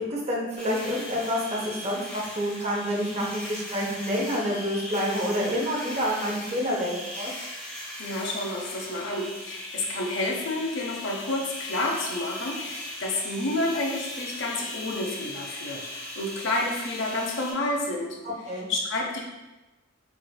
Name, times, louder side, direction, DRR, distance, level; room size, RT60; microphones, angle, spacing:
voice 1, 0.1-7.3 18.5-18.7, equal, 35° right, -2 dB, 0.7 m, -28 dB
sound 1, 0.6-17.5, left 1 dB, 5° left, 1.2 m, -38 dB
voice 2, 8.0-18.2 18.7-19.2, left 2 dB, 70° left, -1 dB, 0.6 m, -30 dB
4.5 x 2.5 x 2.2 m, 1.1 s
head